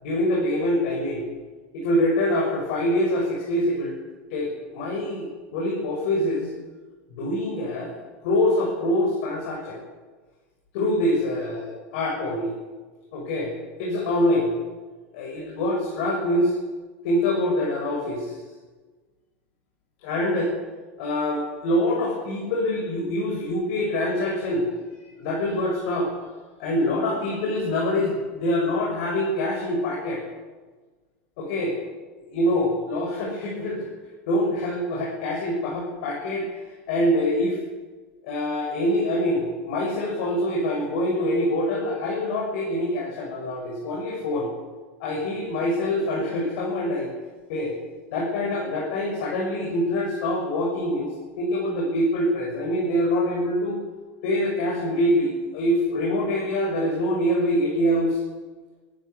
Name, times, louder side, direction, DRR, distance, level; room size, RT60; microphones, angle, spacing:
voice 1, 0.0-1.2 1.7-3.9 4.3-5.3 5.5-6.5 7.1-8.0 8.2-9.8 10.7-12.6 13.1-13.5 13.8-14.5 15.1-16.5 17.0-18.4 20.0-20.5 21.0-24.7 25.2-26.1 26.6-30.2 31.4-31.7 32.3-33.9 34.3-36.5 36.9-37.6 38.2-44.5 45.0-47.1 47.5-47.8 48.1-51.1 51.4-53.8 54.2-58.2, left 1 dB, 65° left, -3 dB, 7.0 m, -25 dB
27.5 x 14.5 x 8.4 m, 1.3 s
supercardioid pair, 145°, 7 cm